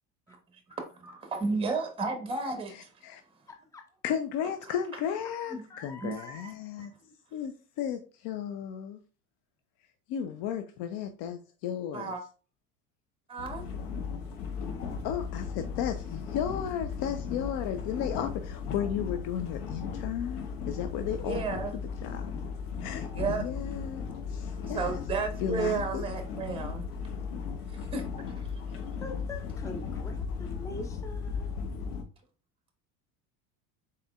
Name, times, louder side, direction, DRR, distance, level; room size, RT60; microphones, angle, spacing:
voice 1, 1.0-2.9 5.5-5.6 6.0-6.9 11.9-12.2 13.3-13.6 14.7-14.8 21.2-21.8 23.1-23.4 24.7-26.8 27.9-28.0, right 4 dB, 10° right, 1.1 m, -33 dB
voice 2, 2.7-3.2 4.0-6.9 7.3-9.0 10.1-12.1 15.0-21.4 21.7-22.3 22.8-24.9 25.4-26.0, left 9 dB, 55° left, 0.6 m, -34 dB
voice 3, 3.5-3.8 5.7-6.5 29.0-31.5, left 3 dB, 5° left, 0.5 m, -44 dB
sound 1, 13.4-32.0, left 5 dB, 85° left, 1.0 m, -36 dB
4.1 x 3.9 x 2.4 m
hypercardioid pair, 85°, 44 cm